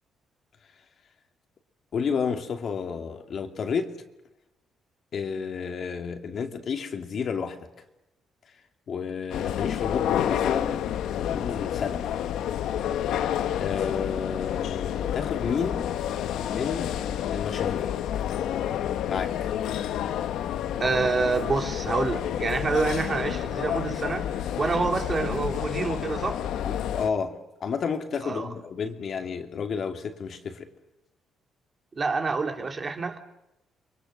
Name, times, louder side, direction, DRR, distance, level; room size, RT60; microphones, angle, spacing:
voice 1, 1.9-3.9 5.1-7.7 8.9-10.9 11.1-12.1 13.6-15.9 16.5-17.0 17.3-18.0 19.1-19.5 26.6-30.7, left 6 dB, 55° left, 2.6 m, -31 dB
sound 1, 9.3-27.1, left 10 dB, 85° left, 1.1 m, -29 dB
voice 2, 20.8-26.4 28.2-28.5 31.9-33.2, right 4 dB, 35° right, 2.8 m, -27 dB
30.0 x 23.0 x 6.5 m
cardioid pair, 90°, 0 cm